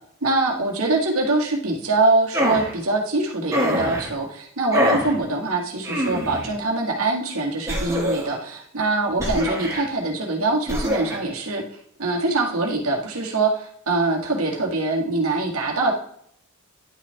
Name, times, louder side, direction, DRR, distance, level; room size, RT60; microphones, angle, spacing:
voice 1, 0.2-11.6 12.0-15.9, right 2 dB, 75° right, 0 dB, 1.8 m, -23 dB
sound 1, 2.3-2.7 3.5-4.1 4.7-5.1 5.8-6.5 7.7-8.4 9.2-9.8 10.7-11.2, equal, 15° right, 2.2 m, -24 dB
11.0 x 5.8 x 3.4 m, 0.69 s
head